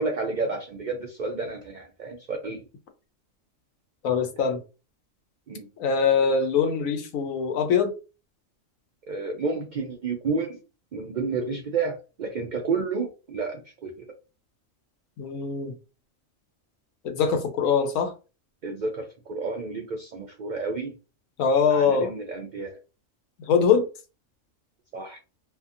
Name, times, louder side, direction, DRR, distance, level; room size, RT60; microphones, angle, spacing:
voice 1, 0.0-2.6 5.5-5.7 9.1-10.6 10.9-13.9 18.6-21.0 21.7-22.7 24.9-25.2, right 4 dB, 80° right, 2 dB, 0.4 m, -30 dB
voice 2, 4.0-4.6 5.8-7.9 15.2-15.7 17.0-18.1 21.4-22.1 23.4-23.9, left 6 dB, 90° left, 6 dB, 1.0 m, -23 dB
2.7 x 2.5 x 2.6 m, 0.33 s
omnidirectional pair, 1.3 m